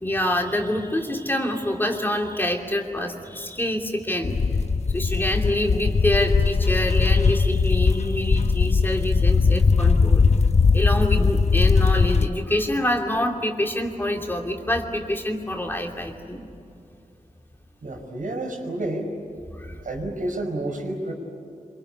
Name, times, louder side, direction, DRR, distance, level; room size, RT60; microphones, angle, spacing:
voice 1, 0.0-4.4 4.9-10.2 10.7-16.5 19.6-19.8, left 1 dB, 15° left, 2 dB, 2.8 m, -26 dB
sound 1, 4.2-12.3, left 4 dB, 55° left, 0.9 m, -20 dB
voice 2, 17.8-19.1 19.8-21.1, right 1 dB, 85° right, 2 dB, 5.0 m, -29 dB
26.0 x 24.5 x 8.4 m, 2.6 s
wide cardioid pair, 105°, 13 cm